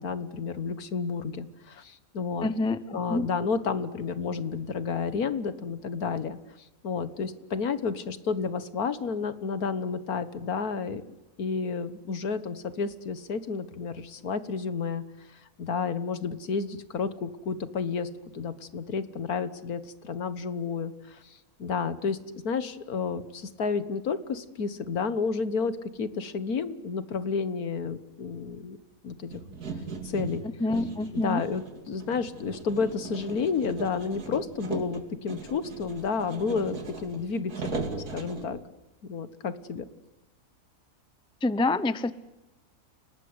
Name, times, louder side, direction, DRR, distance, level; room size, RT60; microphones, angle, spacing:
voice 1, 0.0-2.5 2.9-6.4 6.8-11.0 11.4-15.0 15.3-28.8 29.0-29.4 30.0-30.4 31.1-38.6 39.0-39.9, left 5 dB, 75° left, 13 dB, 1.9 m, -31 dB
voice 2, 2.4-3.3 30.4-31.4 41.4-42.1, left 2 dB, 5° left, 16 dB, 0.4 m, -27 dB
sound 1, 29.3-38.4, right 4 dB, 85° right, 3.1 m, -39 dB
30.0 x 19.0 x 9.7 m, 0.97 s
omnidirectional pair, 1.6 m